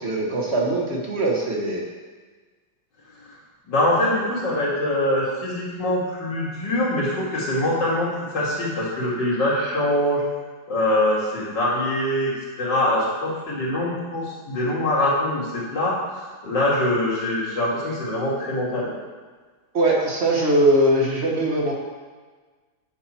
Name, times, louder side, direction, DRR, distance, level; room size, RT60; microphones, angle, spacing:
voice 1, 0.0-1.8 19.7-21.7, right 1 dB, 40° right, -2 dB, 1.4 m, -21 dB
voice 2, 3.7-10.2 10.7-12.3 12.6-15.9 16.4-18.9, left 1 dB, 70° left, -7 dB, 3.0 m, -23 dB
9.0 x 5.6 x 4.4 m, 1.4 s
omnidirectional pair, 2.0 m